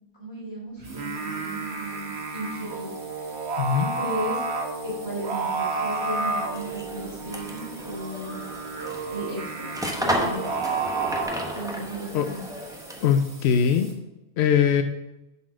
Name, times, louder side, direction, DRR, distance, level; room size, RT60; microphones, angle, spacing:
voice 1, 0.2-2.9 3.8-4.4 4.8-8.4 9.1-10.6 11.5-12.4, right 1 dB, 25° left, -6 dB, 3.2 m, -35 dB
sound 1, 0.8-13.9, right 2 dB, 35° right, 1.4 m, -48 dB
Singing, 0.8-11.2, right 4 dB, 85° right, 1.3 m, -31 dB
sound 2, 6.4-13.2, equal, 5° right, 0.9 m, -33 dB
voice 2, 13.0-14.0 14.4-14.8, left 7 dB, 80° left, 8 dB, 0.9 m, -21 dB
7.5 x 4.5 x 6.0 m, 0.92 s
omnidirectional pair, 1.1 m